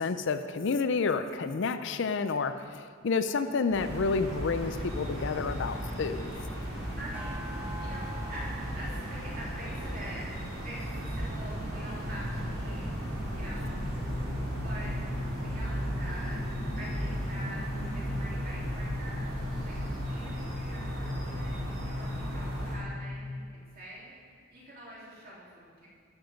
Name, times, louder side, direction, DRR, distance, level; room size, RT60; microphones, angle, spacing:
voice 1, 0.0-6.4, left 4 dB, 55° left, 10 dB, 0.4 m, -30 dB
sound 1, 3.7-22.8, equal, 70° right, 3.4 m, -35 dB
voice 2, 5.4-5.9 7.0-7.4 7.8-8.0 8.3-8.5 8.7-10.2 10.6-12.9 13.3-13.8 14.6-14.9 15.4-16.4 16.8-19.3 19.6-19.7 20.1-24.1 24.5-25.9, right 1 dB, 45° right, -6 dB, 3.3 m, -45 dB
sound 2, 7.1-11.7, equal, 10° right, 0.3 m, -48 dB
sound 3, 13.6-23.4, left 2 dB, 75° left, 0.9 m, -39 dB
13.5 x 7.2 x 5.2 m, 2.1 s
head